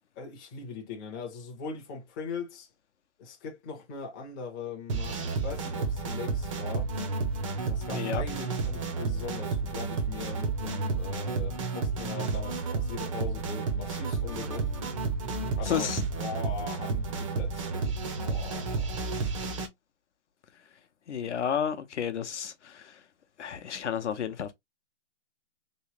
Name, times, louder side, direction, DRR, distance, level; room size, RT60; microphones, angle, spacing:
voice 1, 0.2-2.7 3.2-6.9 7.6-14.7 15.6-15.9 16.2-17.9 18.2-19.4, left 5 dB, 20° left, 0.6 m, -40 dB
sound 1, 4.9-19.7, right 4 dB, 25° right, 0.6 m, -31 dB
voice 2, 7.9-8.2 15.6-16.0 21.1-23.0 23.4-24.5, left 8 dB, 70° left, 0.8 m, -31 dB
3.1 x 2.9 x 3.0 m
hypercardioid pair, 150°, 36 cm